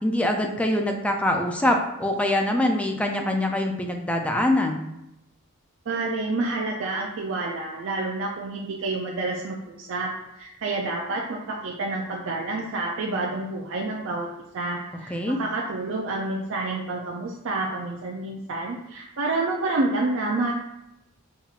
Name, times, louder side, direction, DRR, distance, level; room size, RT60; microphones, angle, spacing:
voice 1, 0.0-4.8 15.1-15.4, left 1 dB, 5° left, 3 dB, 0.3 m, -24 dB
voice 2, 5.9-14.3 14.5-20.5, right 2 dB, 60° right, -1 dB, 0.4 m, -29 dB
5.4 x 2.8 x 2.4 m, 0.85 s
head